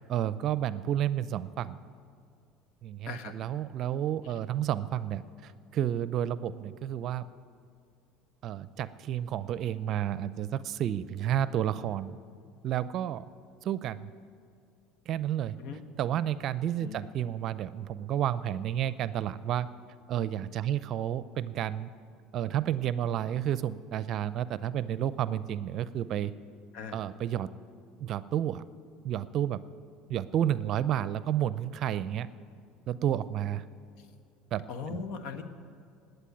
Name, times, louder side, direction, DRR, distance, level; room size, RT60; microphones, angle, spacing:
voice 1, 0.1-1.8 2.8-7.3 8.4-12.2 12.6-13.2 13.6-14.1 15.1-15.6 16.0-19.7 20.1-21.9 22.3-26.3 26.9-27.5 28.0-28.6 29.0-29.6 30.1-32.3 32.9-33.7 34.5-35.0, right 11 dB, 50° right, 16 dB, 0.5 m, -31 dB
voice 2, 16.8-17.1 26.7-27.0 34.0-34.1 34.7-35.4, left 5 dB, 65° left, 9 dB, 1.3 m, -39 dB
19.5 x 8.1 x 9.3 m, 2.3 s
hypercardioid pair, 70°, 0 cm